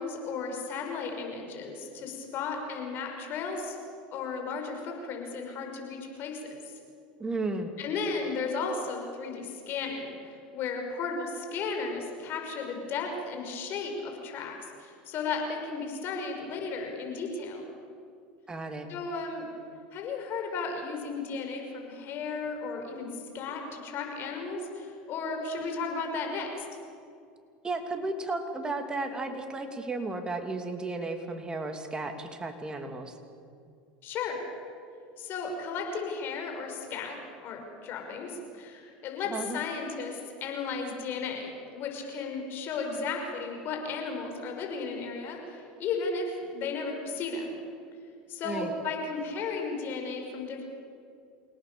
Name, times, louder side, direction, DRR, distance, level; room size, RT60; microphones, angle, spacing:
voice 1, 0.0-3.8 4.1-6.4 6.7-6.8 7.8-17.7 18.9-19.5 19.9-26.6 34.0-34.4 35.2-37.2 37.4-47.5 48.3-50.6, left 4 dB, 50° left, 2 dB, 5.8 m, -34 dB
voice 2, 7.2-7.7 18.5-18.9 27.6-33.1 39.3-39.6 48.4-48.7, right 2 dB, 20° right, 5 dB, 2.9 m, -34 dB
28.5 x 18.0 x 7.1 m, 2.4 s
hypercardioid pair, 95°, 5 cm